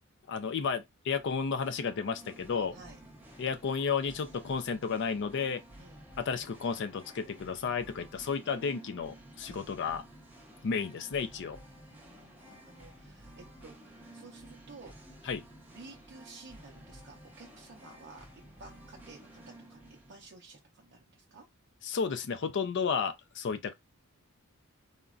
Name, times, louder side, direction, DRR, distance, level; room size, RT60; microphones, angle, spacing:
voice 1, 0.3-2.8 3.4-5.6 6.2-10.0 10.6-11.6 15.2-15.4 21.8-23.7, left 5 dB, 55° left, 0.4 m, -32 dB
Singing, 1.1-20.3, right 1 dB, 10° right, 0.7 m, -53 dB
voice 2, 11.9-15.2 15.7-18.3 18.6-19.4 19.7-21.4, right 3 dB, 55° right, 0.6 m, -53 dB
3.7 x 2.1 x 2.3 m
head